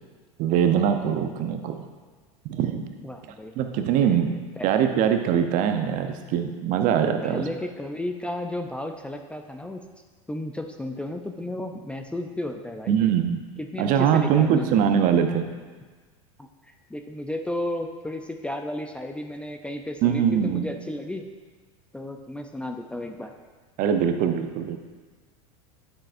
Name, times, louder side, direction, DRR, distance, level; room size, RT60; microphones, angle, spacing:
voice 1, 0.4-1.9 2.4-2.8 3.6-4.4 4.6-7.4 12.9-13.4 13.8-15.5 20.0-20.7 23.8-24.8, right 8 dB, 50° right, 7 dB, 0.7 m, -22 dB
voice 2, 3.0-3.6 4.3-4.7 7.2-9.8 10.3-13.0 13.6-14.8 16.9-21.3 21.9-23.3, left 1 dB, 5° left, 4 dB, 0.5 m, -33 dB
9.0 x 7.5 x 2.6 m, 1.4 s
hypercardioid pair, 100°, 17 cm